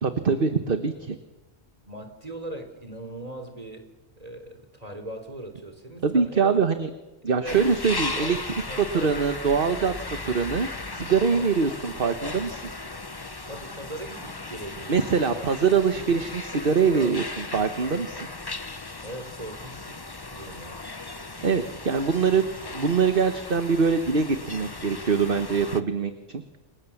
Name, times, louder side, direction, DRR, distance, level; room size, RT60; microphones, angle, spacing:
voice 1, 0.0-1.2 6.0-6.9 7.2-8.4 8.9-9.9 10.2-12.6 14.9-18.2 21.4-22.5 22.7-26.4, right 5 dB, 45° right, 8 dB, 1.4 m, -23 dB
voice 2, 1.8-3.9 4.2-6.6 7.3-7.6 8.2-8.4 8.7-9.2 11.3-11.5 13.5-15.5 16.9-17.2 19.0-20.0 20.3-20.7, right 1 dB, 30° right, 6 dB, 3.6 m, -39 dB
sound 1, 7.4-25.8, left 3 dB, 20° left, 0.9 m, -37 dB
28.5 x 24.0 x 7.3 m, 1.1 s
omnidirectional pair, 1.3 m